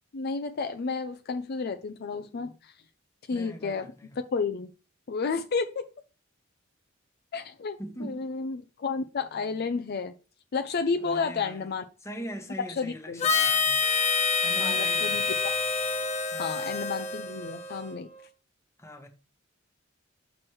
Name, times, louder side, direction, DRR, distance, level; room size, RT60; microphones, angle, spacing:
voice 1, 0.1-2.7 3.3-3.9 4.3-4.7 5.1-5.8 7.3-10.1 10.5-11.8 12.7-13.3 14.6-15.5 16.4-18.1, left 4 dB, 55° left, 0.4 m, -31 dB
voice 2, 3.3-4.2 7.8-8.2 11.0-11.7 12.0-13.9 14.4-15.3 16.3-16.7 18.8-19.1, equal, 15° left, 1.1 m, -41 dB
Harmonica, 13.2-17.9, left 5 dB, 35° left, 0.9 m, -27 dB
6.1 x 6.1 x 3.1 m
head